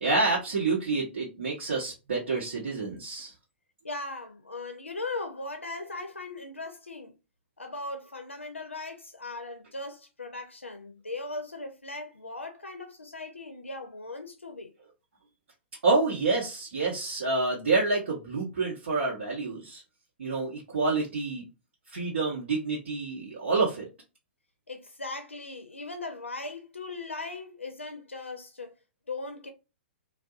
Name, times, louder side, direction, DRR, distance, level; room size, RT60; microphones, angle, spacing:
voice 1, 0.0-3.3 15.8-19.8 20.2-21.4 21.9-23.9, right 3 dB, 70° right, 1.0 m, -28 dB
voice 2, 3.8-7.1 7.6-14.7 24.7-28.7 29.1-29.5, left 2 dB, 90° left, 0.4 m, -38 dB
2.6 x 2.3 x 2.3 m
figure-of-eight pair, 115°, 6 cm